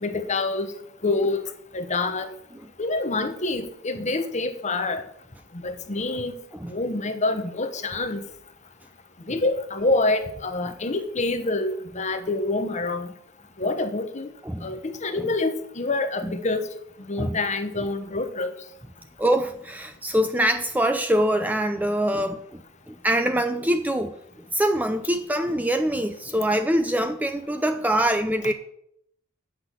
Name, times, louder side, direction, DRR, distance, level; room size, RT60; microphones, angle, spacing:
voice 1, 0.0-0.7 1.0-1.4 1.7-2.3 2.8-5.0 5.6-6.4 6.7-8.2 9.3-13.1 13.6-14.3 14.6-16.7 17.1-18.5, left 2 dB, 35° left, 8 dB, 1.0 m, -26 dB
voice 2, 19.2-22.6 22.9-24.1 24.5-28.5, right 1 dB, 10° right, 8 dB, 0.4 m, -24 dB
8.3 x 5.9 x 7.6 m, 0.73 s
head